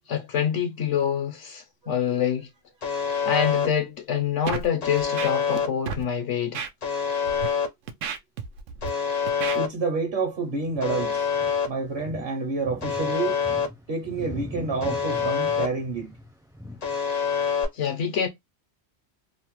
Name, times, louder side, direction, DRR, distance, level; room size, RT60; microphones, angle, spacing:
voice 1, 0.1-2.5 3.2-6.7 17.7-18.3, left 8 dB, 75° left, 1.0 m, -26 dB
Alarm, 2.8-3.7 4.8-5.7 6.8-7.7 8.8-9.7 10.8-11.7 12.8-13.7 14.8-15.7 16.8-17.7, left 6 dB, 45° left, 0.6 m, -26 dB
Scratching (performance technique), 4.5-4.7 5.0-5.6 5.9-6.0 6.5-6.7 7.3-7.5 7.9-8.9 9.3-9.6, right 7 dB, 90° right, 0.9 m, -32 dB
voice 2, 9.5-11.3 11.7-13.4 13.9-16.2, right 4 dB, 60° right, 0.9 m, -28 dB
sound 1, 10.4-17.0, equal, 5° right, 0.4 m, -41 dB
2.7 x 2.1 x 2.9 m
omnidirectional pair, 1.3 m